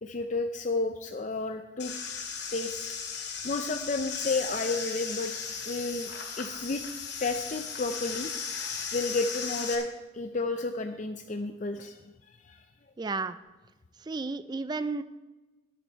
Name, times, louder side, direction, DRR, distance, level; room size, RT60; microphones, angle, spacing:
voice 1, 0.0-1.9 2.5-5.3 5.7-6.1 6.4-6.8 7.1-8.3 8.9-9.9 10.1-12.6, left 3 dB, 40° left, 6 dB, 0.5 m, -32 dB
sound 1, 1.8-9.7, left 6 dB, 60° left, 2.3 m, -36 dB
voice 2, 13.0-13.4 14.0-15.0, right 3 dB, 20° right, 13 dB, 0.3 m, -32 dB
13.0 x 10.0 x 4.5 m, 1.2 s
head